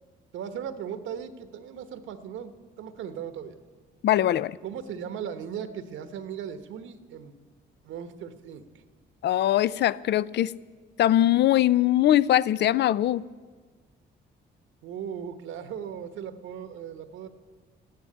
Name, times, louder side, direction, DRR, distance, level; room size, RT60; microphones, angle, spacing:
voice 1, 0.3-3.6 4.6-7.3 7.8-8.7 14.8-17.3, right 8 dB, 80° right, 10 dB, 1.0 m, -37 dB
voice 2, 4.0-4.6 9.2-10.6 11.0-13.2, left 13 dB, 60° left, 20 dB, 0.4 m, -22 dB
13.0 x 10.5 x 8.5 m, 1.5 s
cardioid pair, 90°, 20 cm